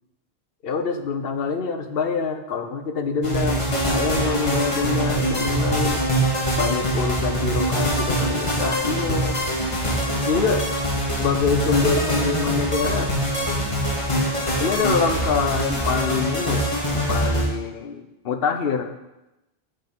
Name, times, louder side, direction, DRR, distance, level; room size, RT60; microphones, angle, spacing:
voice 1, 0.6-6.0 6.6-9.4 10.3-10.7 11.2-13.1 14.6-19.1, left 5 dB, 65° left, 8 dB, 1.0 m, -25 dB
sound 1, 3.2-17.5, right 1 dB, 30° left, 2.0 m, -23 dB
8.9 x 5.5 x 6.0 m, 0.97 s
omnidirectional pair, 1.1 m